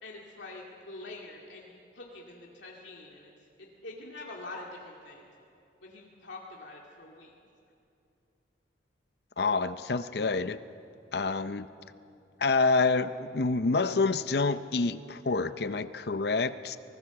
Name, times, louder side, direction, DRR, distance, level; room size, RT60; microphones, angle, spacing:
voice 1, 0.0-3.3 3.6-5.3 5.8-7.3, left 2 dB, 75° left, -2 dB, 2.2 m, -45 dB
voice 2, 9.4-10.6 11.1-11.7 12.4-16.8, left 3 dB, 55° left, 13 dB, 0.6 m, -27 dB
24.5 x 19.0 x 7.0 m, 2.7 s
head